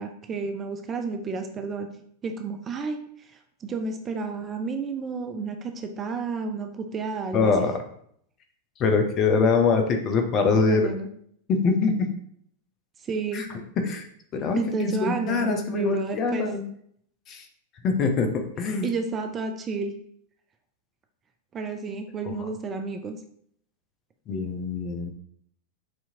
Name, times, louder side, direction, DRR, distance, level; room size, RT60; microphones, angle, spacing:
voice 1, 0.0-1.9 2.2-3.3 3.6-7.5 10.6-11.1 13.0-13.5 14.6-16.5 18.8-19.9 21.5-23.2, right 4 dB, 25° right, 6 dB, 0.5 m, -31 dB
voice 2, 7.3-7.8 8.8-10.9 11.5-12.1 13.3-13.5 13.8-14.1 14.3-16.6 17.3-17.4 17.8-18.8 22.2-22.3 24.3-25.1, left 4 dB, 35° left, 4 dB, 0.7 m, -24 dB
6.1 x 2.9 x 2.7 m, 0.66 s
figure-of-eight pair, 90°, 0 cm